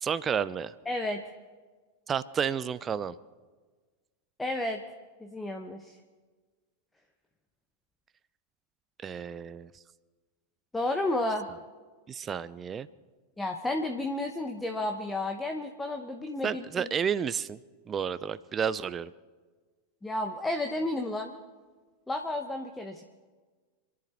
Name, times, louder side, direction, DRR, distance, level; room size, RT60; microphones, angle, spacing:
voice 1, 0.0-0.7 2.1-3.2 9.0-9.7 12.1-12.9 16.4-17.6 17.9-19.1, right 7 dB, 20° right, 17 dB, 0.5 m, -31 dB
voice 2, 0.9-1.2 4.4-4.8 5.2-6.0 10.7-11.5 13.4-16.9 20.0-21.3 22.1-23.0, left 2 dB, 10° left, 4 dB, 1.1 m, -32 dB
28.0 x 11.0 x 4.5 m, 1.4 s
figure-of-eight pair, 90°, 0 cm